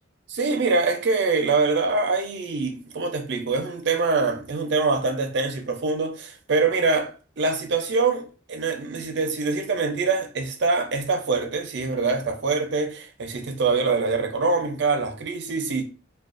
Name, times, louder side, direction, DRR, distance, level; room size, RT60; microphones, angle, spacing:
voice 1, 0.3-15.8, right 4 dB, 60° right, 0.5 m, -24 dB
2.4 x 2.2 x 2.4 m
head